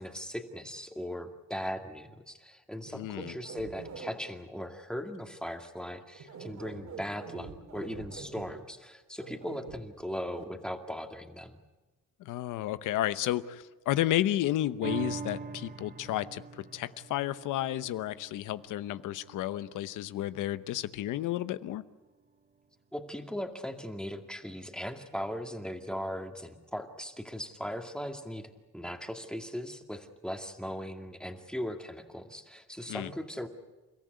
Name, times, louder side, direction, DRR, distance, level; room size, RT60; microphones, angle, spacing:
voice 1, 0.0-11.6 22.9-33.5, equal, 5° left, 4 dB, 2.3 m, -39 dB
sound 1, 2.8-4.1 6.1-8.5 9.2-9.8 10.3-10.4, right 5 dB, 75° right, 6.4 m, -44 dB
voice 2, 2.9-3.3 12.2-21.8 32.9-33.1, left 13 dB, 85° left, 14 dB, 0.9 m, -32 dB
sound 2, 14.8-21.5 21.9-22.0, right 4 dB, 30° right, 1.0 m, -44 dB
30.0 x 14.0 x 9.5 m, 1.2 s
cardioid pair, 90°, 30 cm